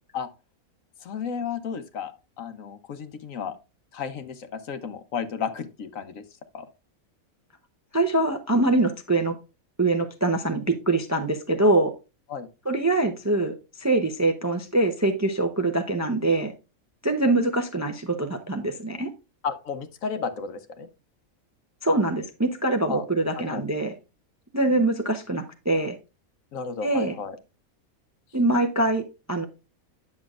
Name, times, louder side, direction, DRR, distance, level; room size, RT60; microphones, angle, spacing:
voice 1, 1.0-3.6 3.9-6.2 6.5-6.7 12.3-12.5 19.4-20.9 22.9-23.0 23.3-23.6 26.5-27.4, left 6 dB, 70° left, 10 dB, 1.3 m, -33 dB
voice 2, 7.9-9.4 9.8-11.9 12.7-16.5 17.0-19.1 21.8-23.9 24.5-25.9 26.8-27.1 28.3-29.5, right 2 dB, 20° right, 6 dB, 0.5 m, -24 dB
9.6 x 6.8 x 2.4 m, 0.29 s
omnidirectional pair, 1.5 m